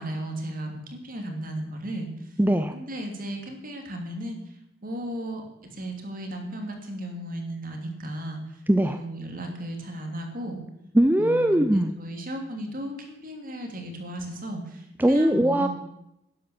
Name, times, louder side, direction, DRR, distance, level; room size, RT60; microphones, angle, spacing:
voice 1, 0.0-2.4 2.7-4.4 4.8-8.6 8.9-10.7 11.2-15.7, right 1 dB, 45° right, 4 dB, 2.8 m, -35 dB
voice 2, 2.4-2.8 8.7-9.0 10.9-11.9 15.0-15.7, right 1 dB, 10° right, 7 dB, 0.5 m, -20 dB
12.0 x 10.0 x 7.2 m, 0.85 s
head